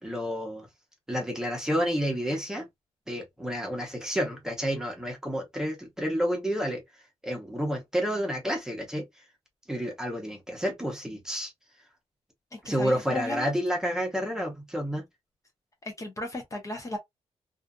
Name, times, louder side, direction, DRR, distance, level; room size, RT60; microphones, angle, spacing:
voice 1, 0.0-0.7 1.1-2.7 3.1-6.8 7.2-9.1 9.7-11.5 12.6-15.0, equal, 5° right, 0.8 m, -30 dB
voice 2, 12.5-13.5 15.8-17.0, left 1 dB, 30° left, 0.7 m, -35 dB
2.5 x 2.4 x 2.3 m
wide cardioid pair, 125°, 11 cm